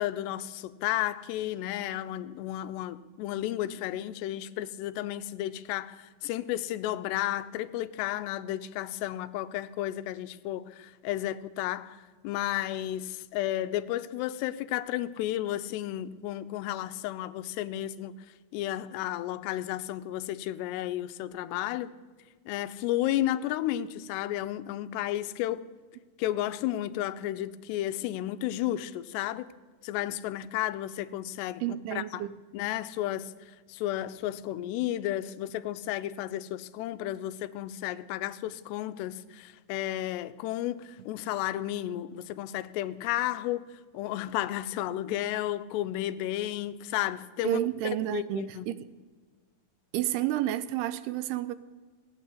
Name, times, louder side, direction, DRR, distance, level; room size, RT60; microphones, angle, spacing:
voice 1, 0.0-12.0 12.2-18.3 18.5-21.9 22.5-25.6 26.2-29.5 29.8-31.6 31.9-32.2 32.5-33.3 33.7-47.6 48.1-48.7, left 13 dB, 85° left, 2.8 m, -32 dB
voice 2, 31.6-32.3 47.4-48.9 49.9-51.5, right 13 dB, 80° right, 2.5 m, -30 dB
16.5 x 9.3 x 8.2 m
omnidirectional pair, 4.8 m